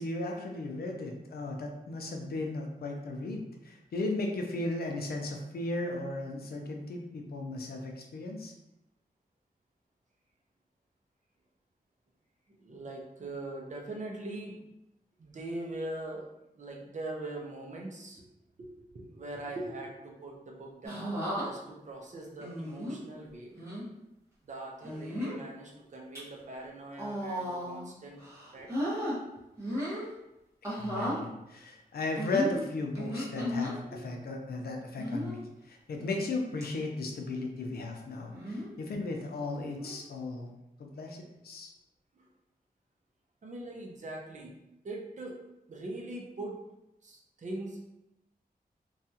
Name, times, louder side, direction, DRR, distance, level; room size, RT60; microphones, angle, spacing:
voice 1, 0.0-8.5 30.7-40.5 40.8-41.7, left 2 dB, 90° left, 2 dB, 0.5 m, -36 dB
voice 2, 12.6-14.6 15.2-16.3 16.5-18.3 18.6-23.5 24.4-28.2 28.5-28.9 33.9-34.0 42.2-42.3 43.4-44.6 44.8-45.4 45.7-46.6 47.0-47.9, right 2 dB, 50° right, -1 dB, 0.6 m, -41 dB
sound 1, 20.8-21.5 22.4-23.0 23.5-23.8 24.8-25.4 25.9-26.2 26.9-27.9 28.2-29.2 29.6-30.1 30.6-31.2 32.2-33.7 35.0-35.4 36.0-36.3 36.6-36.7 38.3-38.7 39.8-40.0, equal, 20° right, 1.1 m, -35 dB
2.7 x 2.3 x 2.8 m, 0.89 s
wide cardioid pair, 105°, 16 cm